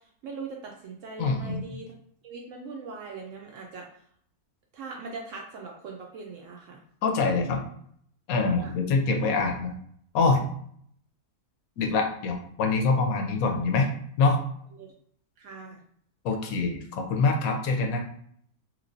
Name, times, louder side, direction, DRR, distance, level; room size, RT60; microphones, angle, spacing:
voice 1, 0.2-1.9 2.2-3.9 4.7-6.8 8.6-8.7 14.7-14.9 15.4-15.8, right 4 dB, 70° right, 0 dB, 0.8 m, -40 dB
voice 2, 1.2-1.6 7.0-7.6 8.3-9.7 10.1-10.4 11.8-13.9 14.2-14.4 16.2-18.0, left 4 dB, 70° left, 3 dB, 1.0 m, -25 dB
3.1 x 3.0 x 2.6 m, 0.64 s
omnidirectional pair, 1.6 m